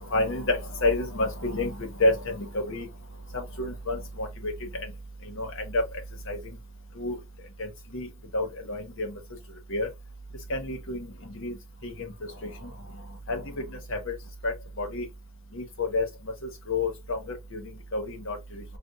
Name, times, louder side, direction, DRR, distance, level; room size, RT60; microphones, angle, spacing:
voice 1, 0.1-2.9 3.3-4.9 5.3-5.8 6.3-6.4 7.0-7.2 7.6-8.1 8.3-9.2 9.7-9.9 10.5-11.5 11.8-12.7 13.3-13.6 13.9-14.1 14.4-15.1 15.5-16.1 16.7-18.6, left 2 dB, 65° left, 1.0 m, -30 dB
4.2 x 2.3 x 2.3 m
head